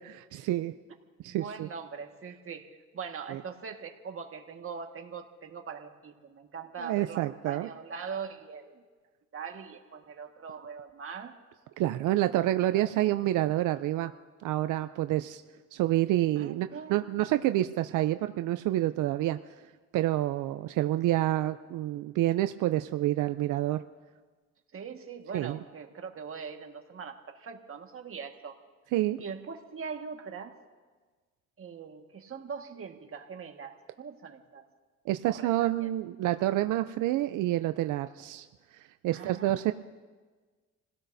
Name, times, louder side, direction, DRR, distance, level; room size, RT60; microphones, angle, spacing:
voice 1, 0.1-0.7 1.2-1.7 3.3-3.4 6.8-7.7 11.8-14.1 14.4-15.4 15.7-19.4 19.9-23.8 25.3-25.6 28.9-29.2 35.1-38.5 38.7-39.7, right 15 dB, 85° right, 10 dB, 0.5 m, -28 dB
voice 2, 1.3-8.8 9.3-11.4 12.6-12.9 16.4-17.0 24.7-28.6 29.2-30.6 31.6-34.6 35.2-35.9 39.1-39.7, right 6 dB, 45° right, 3 dB, 1.7 m, -42 dB
28.5 x 16.5 x 2.7 m, 1.4 s
cardioid pair, 90°, 30 cm